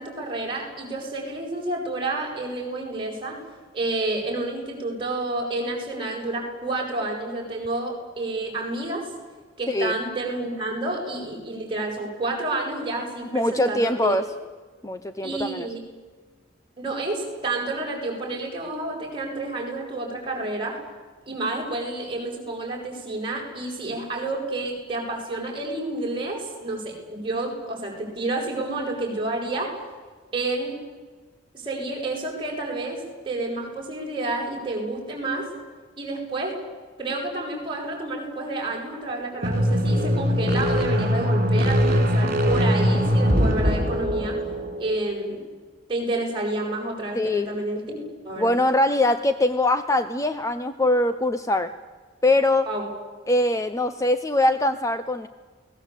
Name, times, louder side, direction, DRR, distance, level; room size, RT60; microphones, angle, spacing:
voice 1, 0.0-3.4 3.7-9.1 9.6-14.2 15.2-15.8 16.8-20.8 21.3-29.7 30.3-30.8 31.5-33.0 33.2-35.5 36.0-36.5 37.0-44.4 44.8-45.4 45.9-48.5 52.7-52.9, right 2 dB, 25° right, -1 dB, 7.7 m, -29 dB
voice 2, 13.3-14.2 14.8-15.7 47.2-47.5 48.4-51.7 52.2-52.7 53.3-55.3, left 1 dB, 15° left, 10 dB, 0.9 m, -22 dB
sound 1, 39.3-45.0, equal, 45° right, 4.6 m, -21 dB
29.0 x 20.0 x 8.6 m, 1.4 s
head